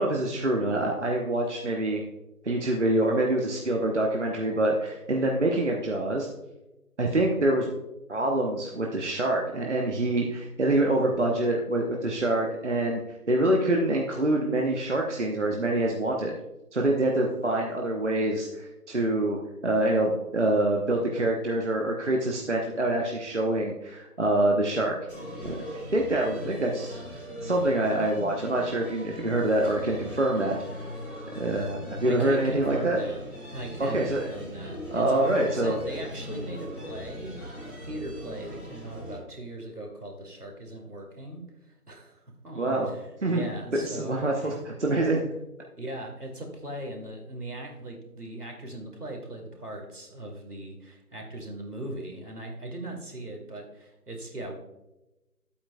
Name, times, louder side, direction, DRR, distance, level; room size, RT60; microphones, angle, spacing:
voice 1, 0.0-2.0 2.4-6.3 7.0-7.7 8.1-13.0 13.3-16.3 16.7-24.9 25.4-27.0 27.4-30.6 31.3-33.0 33.8-34.3 34.9-35.7 42.6-42.9 43.2-43.5 43.7-45.2, right 1 dB, 50° right, 0 dB, 1.0 m, -26 dB
sound 1, 25.1-39.2, equal, ahead, 1.5 m, -40 dB
voice 2, 32.0-33.2 33.5-41.4 41.9-44.5 45.8-54.5, right 1 dB, 75° right, 2 dB, 2.6 m, -39 dB
12.0 x 8.5 x 2.2 m, 0.96 s
figure-of-eight pair, 160°, 46 cm